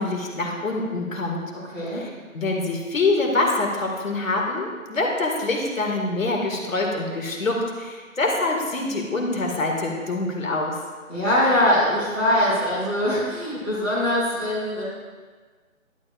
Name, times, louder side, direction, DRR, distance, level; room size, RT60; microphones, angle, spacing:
voice 1, 0.0-1.5 1.9-10.8, left 2 dB, 70° left, 0 dB, 2.2 m, -25 dB
voice 2, 11.1-14.8, left 1 dB, 5° right, -13 dB, 0.9 m, -22 dB
11.5 x 9.0 x 2.5 m, 1.5 s
figure-of-eight pair, 165°, 42 cm